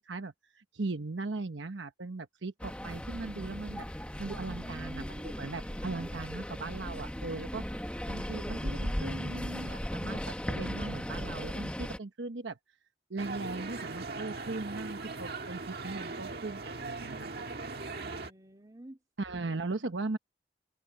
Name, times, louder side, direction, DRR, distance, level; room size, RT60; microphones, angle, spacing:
voice 1, 0.1-3.9 4.2-7.6 8.1-12.6 13.1-17.3 19.2-20.2, right 3 dB, 80° right, 1.0 m, -38 dB
sound 1, 2.6-12.0, equal, 5° left, 1.2 m, -37 dB
voice 2, 4.2-6.2 18.0-19.0, right 1 dB, 20° right, 2.8 m, -49 dB
sound 2, 13.2-18.3, right 3 dB, 55° right, 1.8 m, -39 dB
head